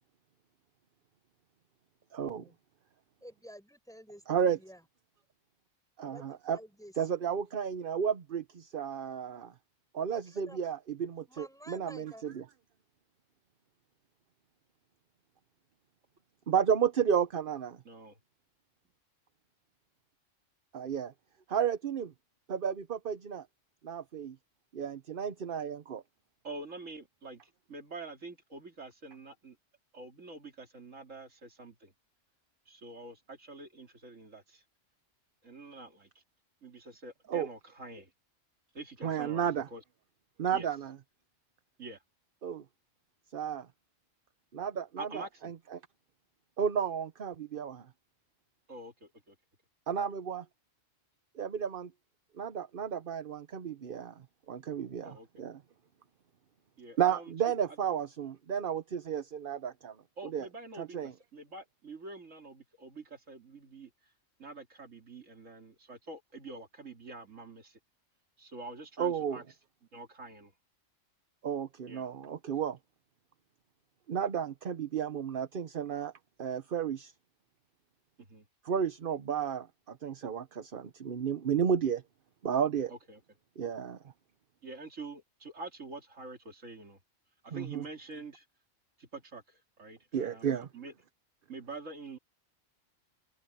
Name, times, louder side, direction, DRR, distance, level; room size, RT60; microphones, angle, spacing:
voice 1, 2.1-2.4 4.3-4.6 6.0-6.6 7.0-9.5 9.9-12.4 16.5-17.8 20.7-21.1 21.5-22.1 22.5-23.5 23.8-24.4 24.7-26.0 37.3-37.5 39.0-39.7 40.4-40.9 42.4-42.6 43.3-43.7 44.5-45.8 46.6-47.9 49.9-50.4 51.4-51.9 52.4-54.1 54.5-55.6 57.0-60.0 60.3-60.5 60.8-61.1 69.0-69.4 71.4-72.8 74.1-76.1 76.4-77.1 78.6-82.0 82.4-82.9 83.6-84.0 87.5-87.8 90.1-90.7, right 8 dB, 50° right, 1.0 m, -32 dB
voice 2, 3.2-4.8 6.0-6.9 10.1-10.6 11.3-12.2, equal, 5° left, 6.1 m, -52 dB
voice 3, 17.8-18.2 26.4-29.6 29.9-31.9 32.7-34.6 35.4-36.2 36.6-38.1 38.7-39.8 40.5-40.7 41.8-42.0 45.0-45.5 48.7-49.4 55.0-55.3 56.8-57.3 60.2-64.1 64.4-67.8 68.4-69.4 69.9-70.5 71.9-72.1 78.2-78.4 82.9-83.2 84.6-87.0 87.4-88.4 89.0-90.9 91.5-92.2, right 3 dB, 80° right, 3.0 m, -46 dB
omnidirectional pair, 1.3 m